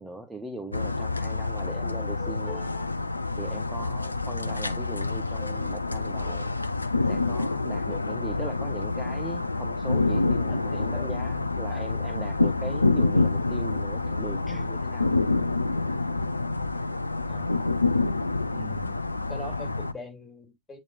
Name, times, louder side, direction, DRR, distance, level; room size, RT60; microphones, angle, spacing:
voice 1, 0.0-2.7 3.4-6.6 7.1-15.1, right 2 dB, 5° right, 1.2 m, -40 dB
sound 1, 0.7-19.9, left 3 dB, 80° left, 0.5 m, -27 dB
sound 2, 2.0-2.9 5.4-5.8 6.1-6.7 7.9-8.0, left 8 dB, 30° left, 2.2 m, -44 dB
voice 2, 10.5-11.1 11.7-11.9 14.5-14.6 17.3-17.6 18.5-19.0 19.3-20.8, left 1 dB, 15° left, 2.8 m, -42 dB
8.6 x 4.1 x 2.7 m
figure-of-eight pair, 90°, 0 cm